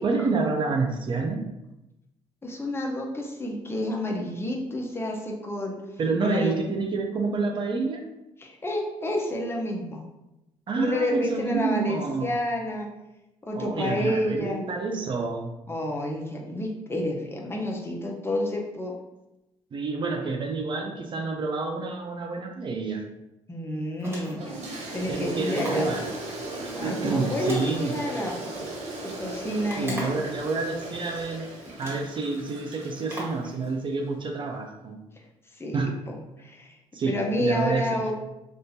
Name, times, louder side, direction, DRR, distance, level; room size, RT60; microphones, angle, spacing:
voice 1, 0.0-1.4 6.0-8.0 10.7-12.4 13.6-15.5 19.7-23.0 25.1-26.1 26.6-28.0 29.8-31.5 31.8-35.0 35.7-35.9 36.9-37.9, right 4 dB, 45° right, 3 dB, 0.5 m, -28 dB
voice 2, 2.4-5.8 6.2-6.6 8.4-10.1 10.7-12.9 13.4-14.6 15.7-18.9 23.5-24.6 24.9-25.9 26.7-28.7 29.2-30.2 35.6-36.8 37.1-38.1, left 1 dB, 20° left, 0 dB, 0.7 m, -30 dB
sound 1, 24.0-24.5 25.5-25.9 27.4-28.4 29.7-30.3 31.2-31.3 31.8-32.1 33.1-33.5, right 1 dB, 20° right, 1.5 m, -38 dB
Toilet flush, 24.4-33.7, right 2 dB, 70° right, 0.9 m, -37 dB
3.5 x 2.5 x 2.8 m, 0.95 s
cardioid pair, 85°, 12 cm